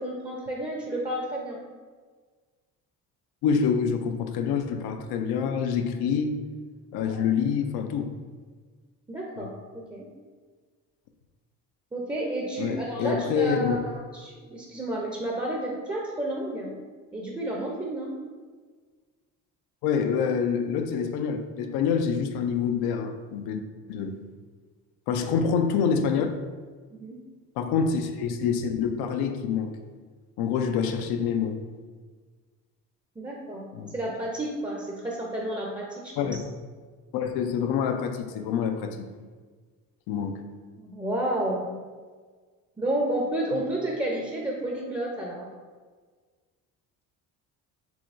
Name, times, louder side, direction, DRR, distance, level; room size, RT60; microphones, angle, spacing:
voice 1, 0.0-1.6 6.9-7.3 9.1-10.1 11.9-16.7 17.1-18.1 25.2-25.3 26.9-27.2 33.2-33.7 33.9-36.4 40.5-41.7 42.8-45.5, right 1 dB, 10° right, -2 dB, 0.6 m, -31 dB
voice 2, 3.4-6.4 6.9-8.1 9.4-9.5 12.6-13.8 19.8-23.6 23.9-24.2 25.1-26.3 27.6-29.7 30.4-31.6 33.7-33.9 36.2-36.4 37.1-39.1 40.1-40.4, left 6 dB, 70° left, 6 dB, 0.5 m, -26 dB
4.8 x 3.0 x 2.5 m, 1.5 s
supercardioid pair, 65°, 40 cm